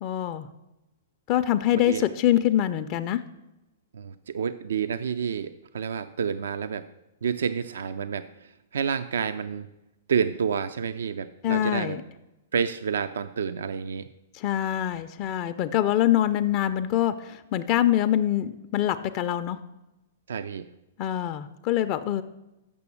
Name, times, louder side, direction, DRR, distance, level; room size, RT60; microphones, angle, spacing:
voice 1, 0.0-0.5 1.3-3.2 11.4-12.0 14.3-19.6 21.0-22.2, left 12 dB, 40° left, 9 dB, 0.4 m, -24 dB
voice 2, 1.7-2.1 3.9-6.9 7.2-9.7 10.1-12.0 12.5-14.1 20.3-20.7, right 7 dB, 80° right, 12 dB, 0.3 m, -29 dB
6.9 x 6.0 x 7.0 m, 0.96 s
hypercardioid pair, 130°, 0 cm